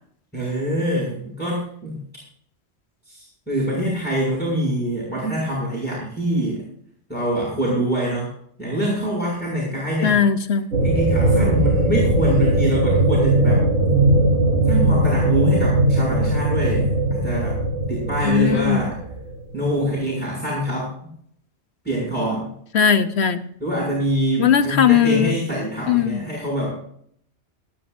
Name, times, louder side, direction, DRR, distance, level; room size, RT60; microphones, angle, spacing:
voice 1, 0.3-2.0 3.0-6.6 7.1-8.3 8.6-10.2 10.8-13.6 14.7-17.6 17.9-19.0 19.5-20.9 21.8-22.5 23.6-26.8, right 1 dB, 10° left, -6 dB, 6.5 m, -24 dB
voice 2, 10.0-10.7 18.2-18.9 22.7-23.4 24.4-25.3 25.9-26.2, left 8 dB, 70° left, 9 dB, 1.2 m, -18 dB
sound 1, 10.7-19.4, right 1 dB, 75° right, 5.2 m, -19 dB
27.5 x 10.0 x 2.6 m, 0.65 s
omnidirectional pair, 1.1 m